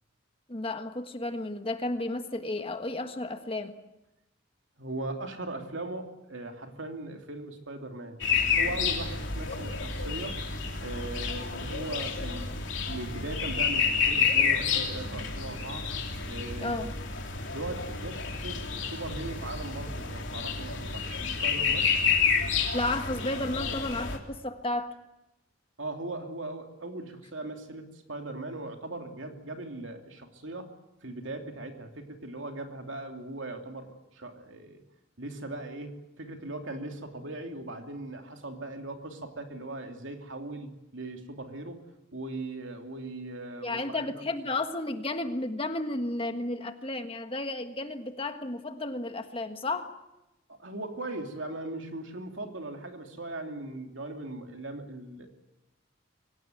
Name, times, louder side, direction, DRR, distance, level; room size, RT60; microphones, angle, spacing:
voice 1, 0.5-3.8 16.6-16.9 22.7-24.9 43.6-49.9, left 2 dB, 30° left, 7 dB, 1.5 m, -32 dB
voice 2, 4.8-8.2 8.6-10.4 10.8-15.9 16.3-16.8 17.5-21.9 25.8-30.7 31.0-34.8 35.2-41.9 42.1-44.1 50.5-55.3, right 2 dB, 70° right, 4 dB, 2.9 m, -39 dB
sound 1, 8.2-24.2, left 5 dB, 65° left, 3.4 m, -29 dB
24.5 x 18.0 x 9.2 m, 0.95 s
head